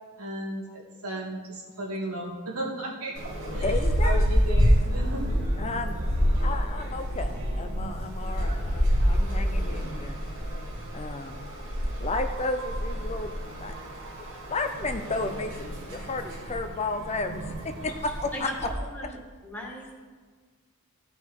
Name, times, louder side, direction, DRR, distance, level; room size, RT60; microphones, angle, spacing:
voice 1, 0.2-3.1 3.5-3.7 4.0-5.2, right 1 dB, 85° right, -3 dB, 2.3 m, -34 dB
sound 1, 3.1-18.7, equal, 60° right, 2.9 m, -28 dB
voice 2, 3.6-4.3 5.6-6.0 6.4-10.2 10.9-11.5 12.0-13.7 14.5-18.5, left 3 dB, 30° left, 7 dB, 0.6 m, -33 dB
voice 3, 19.4-19.9, left 1 dB, 10° left, -3 dB, 2.0 m, -37 dB
15.5 x 5.5 x 4.7 m, 1.5 s
head